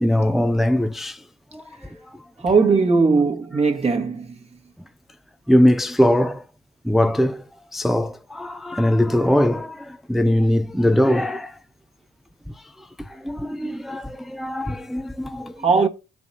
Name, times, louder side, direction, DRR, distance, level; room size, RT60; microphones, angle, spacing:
voice 1, 0.0-1.2 1.5-1.6 5.5-6.4 6.8-7.4 7.7-11.5 13.2-15.5, left 1 dB, ahead, 0.4 m, -20 dB
voice 2, 2.4-4.3 15.6-15.9, right 4 dB, 30° right, 1.5 m, -18 dB
14.0 x 4.9 x 2.7 m
cardioid pair, 90°, 20 cm